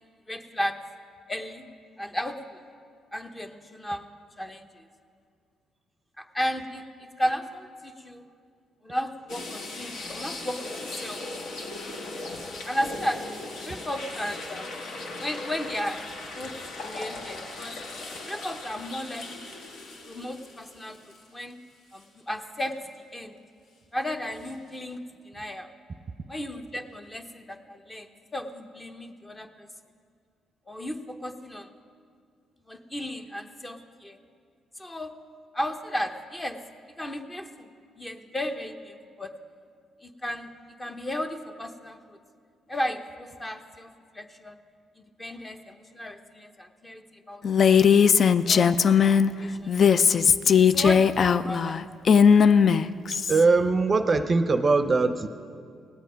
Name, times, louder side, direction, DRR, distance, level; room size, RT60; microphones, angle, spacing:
voice 1, 0.3-0.8 1.3-1.6 2.0-2.6 3.1-4.1 4.4-4.8 6.2-8.2 8.8-11.2 12.1-12.2 12.6-13.2 13.6-14.7 15.2-16.0 16.3-16.5 16.8-17.8 18.3-19.4 20.1-21.0 21.3-21.6 21.9-22.8 23.1-23.4 23.9-25.0 25.2-25.7 26.3-29.7 30.7-31.7 32.7-34.2 34.8-35.1 35.5-36.6 37.0-37.7 37.9-39.3 40.0-40.5 40.8-42.2 42.7-44.6 45.2-47.4 48.4-48.7 49.4-49.7 50.5-51.8, equal, 15° left, 6 dB, 0.8 m, -34 dB
sound 1, 9.3-21.5 21.9-22.0 24.4-24.5, left 2 dB, 75° left, 1.4 m, -38 dB
Female speech woman speaking, 47.4-49.3 49.7-53.4, left 7 dB, 50° left, 0.3 m, -19 dB
voice 2, 53.1-55.3, right 3 dB, 35° right, 9 dB, 0.5 m, -22 dB
17.5 x 8.2 x 5.1 m, 2.2 s
cardioid pair, 90°, 0 cm